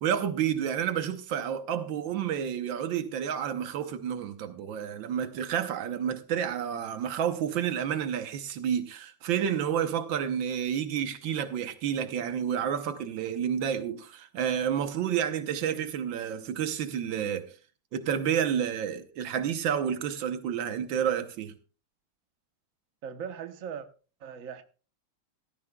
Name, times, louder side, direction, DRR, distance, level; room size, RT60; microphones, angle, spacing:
voice 1, 0.0-17.5 17.9-21.5, right 8 dB, 85° right, 1.7 m, -30 dB
voice 2, 23.0-23.9 24.2-24.6, right 7 dB, 50° right, 1.3 m, -39 dB
16.0 x 13.5 x 2.3 m
omnidirectional pair, 2.0 m